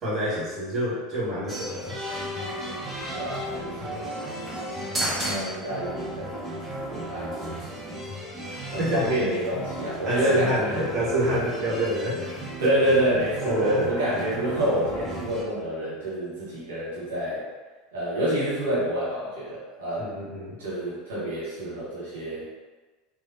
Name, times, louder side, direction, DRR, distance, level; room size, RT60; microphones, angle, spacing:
voice 1, 0.0-2.0 8.8-9.2 10.0-12.2 12.6-12.7 13.5-13.9 20.0-20.6, right 1 dB, 35° right, -8 dB, 1.1 m, -27 dB
sound 1, 1.5-15.4, right 1 dB, 15° right, 0.8 m, -34 dB
voice 2, 3.1-4.5 5.2-6.4 6.9-7.9 8.7-10.8 12.6-17.4 17.9-20.1 20.6-22.5, right 1 dB, 65° right, -9 dB, 0.8 m, -28 dB
3.3 x 2.2 x 2.5 m, 1.3 s
figure-of-eight pair, 75°, 0 cm